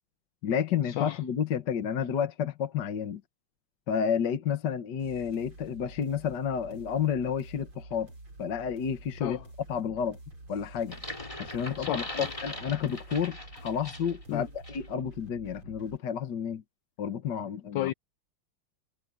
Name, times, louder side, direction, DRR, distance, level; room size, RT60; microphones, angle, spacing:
voice 1, 0.4-3.2 3.9-8.1 8.4-9.4 9.7-10.2 10.5-11.0 11.4-16.6 17.0-17.9, left 8 dB, 55° left, 1.8 m, -31 dB
sound 1, 5.0-16.0, right 2 dB, 70° right, 7.6 m, -48 dB
sound 2, 10.8-14.2 14.6-14.9, left 1 dB, 15° left, 2.3 m, -41 dB
voice 2, 11.8-12.3 14.3-14.4 17.7-17.9, left 14 dB, 75° left, 1.1 m, -32 dB
omnidirectional pair, 2.3 m